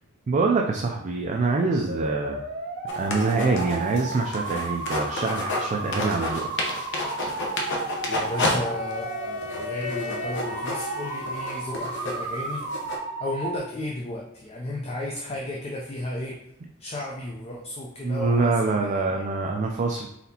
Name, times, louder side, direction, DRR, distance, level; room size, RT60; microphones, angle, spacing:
voice 1, 0.3-2.4 3.0-6.5 18.0-20.1, right 3 dB, 35° right, 2 dB, 0.3 m, -25 dB
sound 1, 1.9-13.6, right 3 dB, 50° right, 0.8 m, -33 dB
sound 2, 2.9-5.7 5.9-8.6 8.9-9.0 9.4-13.0, left 2 dB, 60° left, 0.8 m, -30 dB
sound 3, 7.9-12.9, left 4 dB, 10° left, 1.4 m, -40 dB
voice 2, 8.1-12.6 13.2-16.4 16.8-19.2, left 1 dB, 30° left, -1 dB, 0.5 m, -34 dB
4.1 x 4.0 x 2.8 m, 0.78 s
head